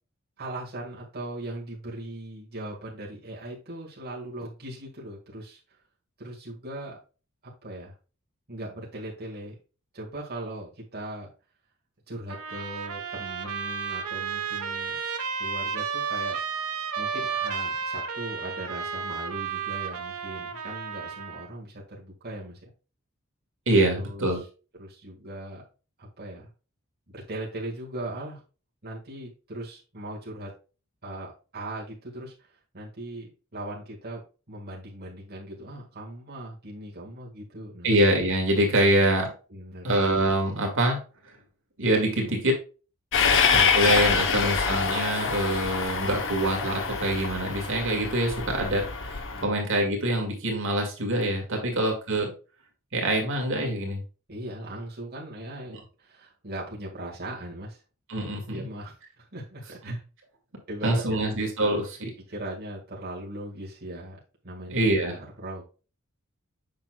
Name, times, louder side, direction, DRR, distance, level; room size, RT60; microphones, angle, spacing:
voice 1, 0.4-5.8 6.2-7.0 7.4-7.9 8.5-9.6 9.9-11.3 12.1-15.0 15.4-16.4 17.0-22.7 23.8-24.4 24.8-25.6 26.0-26.5 27.1-28.4 28.8-30.5 31.0-34.2 34.5-37.9 39.5-39.9 43.4-43.5 44.3-44.6 49.3-49.6 54.3-57.8 58.5-60.0 60.7-61.4 61.7-61.8 62.3-65.6, right 1 dB, 45° right, -3 dB, 1.8 m, -39 dB
Trumpet, 12.3-21.5, right 6 dB, 80° right, 1.0 m, -32 dB
voice 2, 23.7-24.4 37.8-39.3 39.8-41.0 41.8-42.6 43.5-52.3 52.9-54.0 58.1-58.7 59.9-60.0 60.8-62.1 64.7-65.1, right 1 dB, 60° right, 1 dB, 1.9 m, -25 dB
Train, 43.1-49.4, left 6 dB, 60° left, 0.9 m, -25 dB
7.3 x 6.0 x 2.3 m, 0.34 s
head